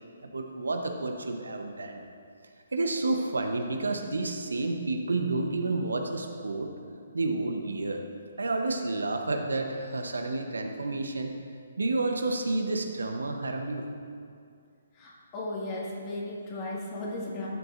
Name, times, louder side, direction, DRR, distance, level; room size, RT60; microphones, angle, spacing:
voice 1, 0.2-2.0 2.7-6.7 7.1-8.0 8.4-11.3 11.8-13.9, right 2 dB, 85° right, 4 dB, 0.8 m, -30 dB
voice 2, 15.0-17.5, left 1 dB, 30° left, -4 dB, 2.0 m, -35 dB
12.0 x 7.7 x 2.6 m, 2.3 s
hypercardioid pair, 140°, 0 cm